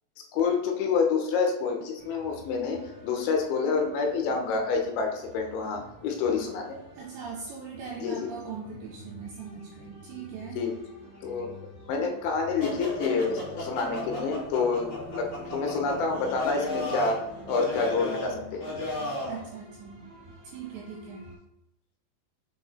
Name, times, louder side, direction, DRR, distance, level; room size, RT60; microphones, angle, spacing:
voice 1, 0.3-6.8 8.0-8.3 10.6-10.7 11.2-11.5 11.9-18.7, left 4 dB, 80° left, 3 dB, 3.3 m, -28 dB
sound 1, 2.0-21.4, equal, 30° right, 1.6 m, -50 dB
voice 2, 6.9-10.6 19.3-20.1 20.4-21.3, right 6 dB, 75° right, -2 dB, 3.0 m, -40 dB
sound 2, 12.6-19.4, left 2 dB, 45° left, 3.3 m, -35 dB
6.9 x 4.7 x 4.3 m, 0.84 s
omnidirectional pair, 5.4 m